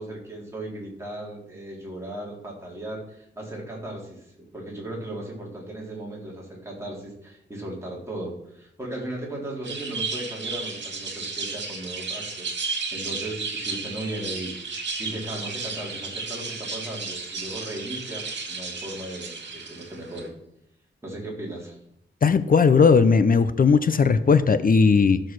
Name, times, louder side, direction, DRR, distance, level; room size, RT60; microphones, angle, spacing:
voice 1, 0.0-20.3 21.0-21.8, right 1 dB, 15° right, -3 dB, 4.0 m, -36 dB
sound 1, 9.6-20.3, right 4 dB, 60° right, 2.4 m, -33 dB
voice 2, 22.2-25.2, left 5 dB, 45° left, 12 dB, 0.6 m, -17 dB
13.0 x 6.5 x 6.3 m, 0.78 s
wide cardioid pair, 125°, 20 cm